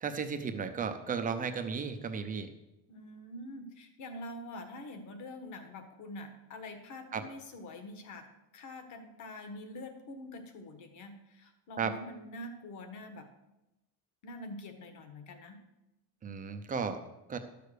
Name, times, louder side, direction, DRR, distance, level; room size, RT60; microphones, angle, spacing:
voice 1, 0.0-2.5 7.1-7.2 11.8-11.9 16.2-17.0 17.3-17.4, right 6 dB, 20° right, 7 dB, 0.6 m, -34 dB
voice 2, 2.9-8.3 8.5-13.3 14.2-15.6, left 1 dB, 40° left, 7 dB, 1.6 m, -45 dB
12.0 x 6.8 x 6.5 m, 0.94 s
cardioid pair, 175°, 45 cm